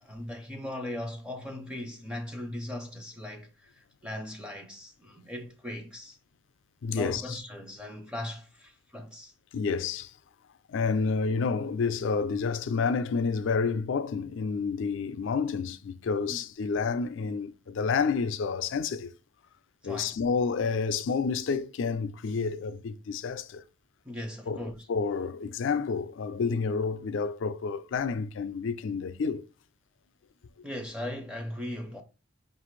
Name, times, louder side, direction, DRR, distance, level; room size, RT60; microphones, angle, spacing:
voice 1, 0.0-6.2 6.9-9.3 16.3-16.4 19.8-20.2 24.0-24.9 30.6-32.0, left 1 dB, 5° right, 0.5 m, -38 dB
voice 2, 6.8-7.4 9.5-10.1 10.7-19.1 19.8-23.6 24.5-29.5, left 5 dB, 70° left, 0.4 m, -29 dB
5.5 x 2.5 x 3.1 m
head